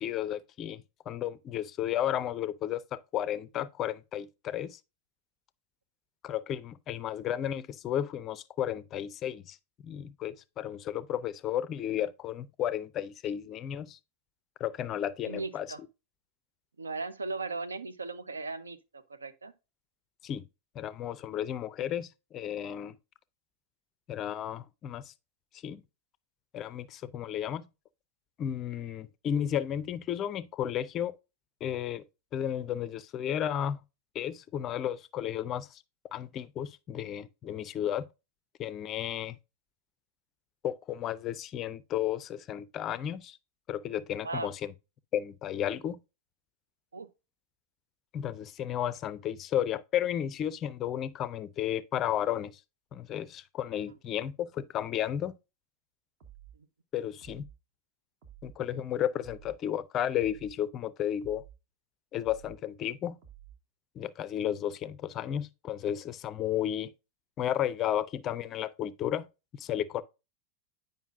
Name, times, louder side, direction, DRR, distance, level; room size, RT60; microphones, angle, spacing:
voice 1, 0.0-4.8 6.2-9.6 9.8-14.0 14.6-15.7 20.2-20.4 20.8-23.0 24.1-25.1 25.6-25.8 26.5-27.6 28.4-31.1 31.6-32.0 32.3-33.8 34.1-35.8 36.1-38.1 38.6-39.4 40.6-43.4 43.7-44.7 45.1-46.0 48.1-52.5 52.9-55.3 56.9-57.5 58.4-61.4 62.1-63.2 64.0-66.9 67.4-69.3 69.5-70.0, left 10 dB, 30° left, 0.4 m, -33 dB
voice 2, 15.2-15.8 16.8-19.5 44.2-44.5 46.9-47.1 53.7-53.8 56.5-56.7, right 3 dB, 75° right, 0.5 m, -37 dB
sound 1, 56.2-56.6 57.2-57.6 58.2-58.6 59.2-59.6 60.2-60.6 61.2-61.6 62.2-62.6 63.2-63.6, right 11 dB, 45° right, 1.3 m, -52 dB
9.1 x 5.3 x 2.5 m
figure-of-eight pair, 90°, 0 cm